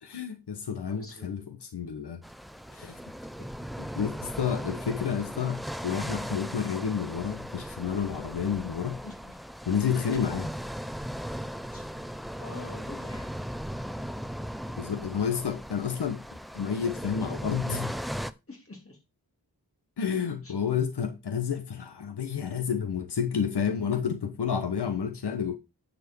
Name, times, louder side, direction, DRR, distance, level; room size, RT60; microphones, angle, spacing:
voice 1, 0.0-2.2 2.7-3.0 4.0-9.0 9.7-10.5 14.8-16.2 16.5-17.9 20.0-25.6, left 7 dB, 90° left, 1.2 m, -30 dB
voice 2, 0.9-1.3 3.4-3.7 9.0-9.4 11.7-11.9 12.4-13.3 18.5-19.0 20.4-20.5, left 2 dB, 35° left, 3.1 m, -45 dB
sound 1, 2.2-18.3, equal, ahead, 0.4 m, -37 dB
9.6 x 4.8 x 4.6 m
wide cardioid pair, 115°, 39 cm